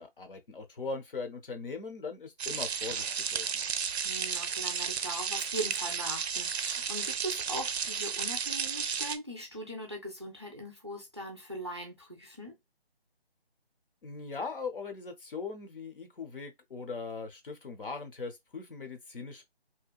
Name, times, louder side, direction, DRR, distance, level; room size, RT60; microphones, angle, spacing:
voice 1, 0.0-3.6 14.0-19.4, left 4 dB, 60° left, 0.7 m, -40 dB
sound 1, 2.4-9.2, right 7 dB, 85° right, 0.5 m, -33 dB
voice 2, 4.0-12.6, right 1 dB, 30° right, 0.4 m, -40 dB
2.8 x 2.1 x 2.3 m
figure-of-eight pair, 165°, 31 cm